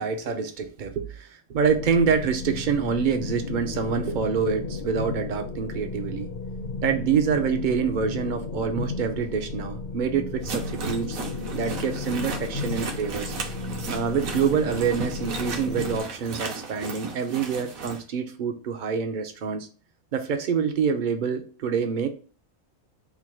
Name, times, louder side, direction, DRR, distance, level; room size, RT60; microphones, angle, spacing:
voice 1, 0.0-6.3 6.8-11.2 11.5-13.4 13.9-19.7 20.1-22.1, right 6 dB, 60° right, 6 dB, 0.5 m, -26 dB
sound 1, 1.6-16.0, left 3 dB, 50° left, 0.5 m, -34 dB
sound 2, 10.4-18.0, right 4 dB, 80° right, 1.2 m, -35 dB
3.6 x 2.2 x 4.4 m, 0.37 s
omnidirectional pair, 1.4 m